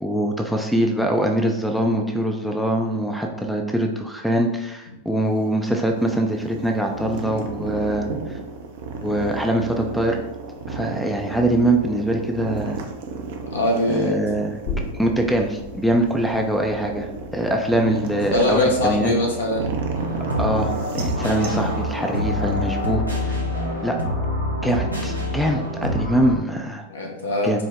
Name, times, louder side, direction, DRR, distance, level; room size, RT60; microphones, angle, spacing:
voice 1, 0.0-8.4 9.0-10.2 10.7-12.8 13.9-14.6 15.0-19.1 20.4-23.3 23.8-24.0 24.6-26.8 27.4-27.6, right 1 dB, ahead, 2 dB, 0.4 m, -23 dB
sound 1, 5.3-23.0, right 4 dB, 55° right, 0.5 m, -33 dB
voice 2, 13.5-14.2 18.3-19.7 23.4-23.5 26.9-27.7, left 1 dB, 70° left, 0 dB, 0.8 m, -22 dB
sound 2, 14.7-21.9 22.3-22.4, left 3 dB, 40° left, 0.9 m, -38 dB
sound 3, 19.9-26.3, left 1 dB, 85° right, 0.7 m, -26 dB
4.5 x 2.0 x 3.6 m, 0.93 s
figure-of-eight pair, 90°, 0 cm